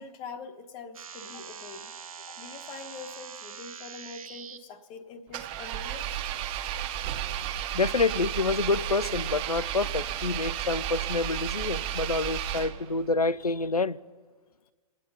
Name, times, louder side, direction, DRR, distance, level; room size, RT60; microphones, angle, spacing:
voice 1, 0.0-1.9 2.3-6.2, left 4 dB, 25° left, 1.1 m, -44 dB
sound 1, 0.9-4.6, right 7 dB, 70° right, 0.9 m, -43 dB
Engine, 5.3-13.1, right 10 dB, 30° right, 0.8 m, -33 dB
voice 2, 7.7-14.0, left 3 dB, 85° left, 0.5 m, -27 dB
27.0 x 9.1 x 5.5 m
figure-of-eight pair, 110°, 19 cm